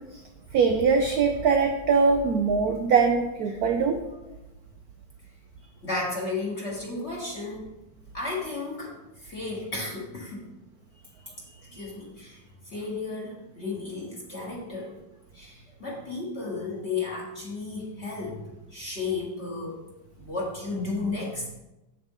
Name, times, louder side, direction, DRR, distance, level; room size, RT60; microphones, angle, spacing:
voice 1, 0.5-4.0, right 5 dB, 80° right, 5 dB, 0.8 m, -22 dB
voice 2, 5.8-7.7 8.1-10.4 11.7-15.0 15.3-18.4 18.7-19.8 20.2-21.5, left 3 dB, 40° left, -4 dB, 1.3 m, -33 dB
7.5 x 7.1 x 3.7 m, 1.0 s
omnidirectional pair, 2.3 m